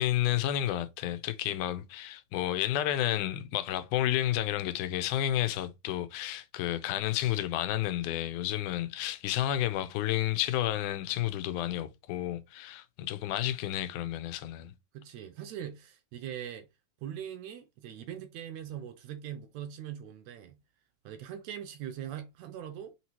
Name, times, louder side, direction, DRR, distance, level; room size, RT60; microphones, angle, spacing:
voice 1, 0.0-14.7, left 13 dB, 90° left, 2.1 m, -31 dB
voice 2, 14.9-16.7 17.0-20.6 21.0-22.9, right 10 dB, 75° right, 1.8 m, -41 dB
6.0 x 2.9 x 2.9 m
omnidirectional pair, 3.5 m